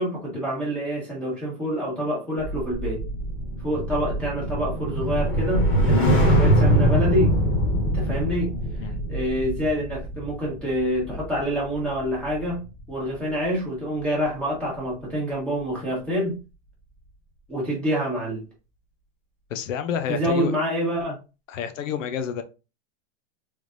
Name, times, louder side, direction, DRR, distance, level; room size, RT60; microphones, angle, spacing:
voice 1, 0.0-3.0 3.6-7.4 7.9-8.5 9.1-12.6 12.9-16.4 17.5-18.4 20.1-21.2, equal, 5° left, 1.2 m, -27 dB
sound 1, 2.4-12.8 13.1-13.4, equal, 40° left, 1.5 m, -23 dB
voice 2, 19.5-20.5 21.5-22.4, left 8 dB, 90° left, 0.7 m, -29 dB
3.5 x 3.1 x 2.5 m
supercardioid pair, 160°, 37 cm